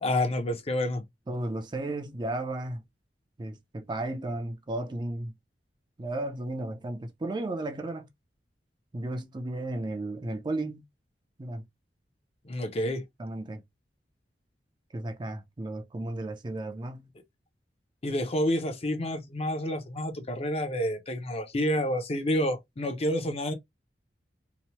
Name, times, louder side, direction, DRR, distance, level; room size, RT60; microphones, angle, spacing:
voice 1, 0.0-1.0 12.5-13.0 18.0-23.5, left 1 dB, 35° left, 0.6 m, -29 dB
voice 2, 1.3-2.8 3.4-5.3 6.0-8.1 8.9-10.8 11.4-11.6 13.2-13.6 14.9-17.1, right 2 dB, 25° right, 0.4 m, -34 dB
2.9 x 2.0 x 2.9 m
head